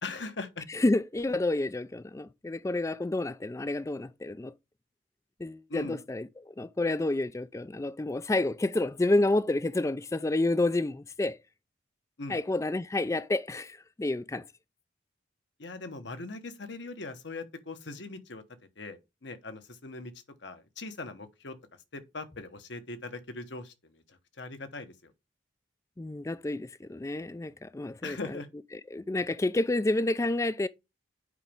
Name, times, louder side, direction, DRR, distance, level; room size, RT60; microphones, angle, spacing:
voice 1, 0.0-0.6 5.7-6.0 12.2-12.4 15.6-18.4 18.8-20.1 20.4-21.6 21.9-25.1 28.0-28.5, left 3 dB, 65° left, 1.1 m, -40 dB
voice 2, 0.7-4.5 5.4-11.4 12.3-14.4 26.0-28.4 28.9-30.7, left 2 dB, 15° left, 0.3 m, -29 dB
8.3 x 5.1 x 3.5 m
head